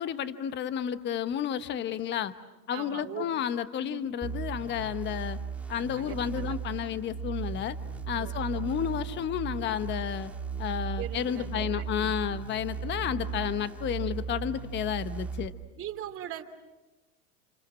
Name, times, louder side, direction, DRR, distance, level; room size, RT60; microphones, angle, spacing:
voice 1, 0.0-2.3 2.7-5.4 5.7-7.8 8.1-10.3 10.6-15.5, left 9 dB, 25° left, 12 dB, 1.0 m, -31 dB
voice 2, 2.7-3.3 3.8-4.2 6.0-6.5 8.2-8.7 11.0-12.2 15.8-16.4, right 11 dB, 30° right, 4 dB, 2.9 m, -41 dB
sound 1, 4.2-15.5, right 7 dB, 5° right, 2.5 m, -36 dB
29.0 x 27.0 x 7.6 m, 1.1 s
hypercardioid pair, 125°, 45 cm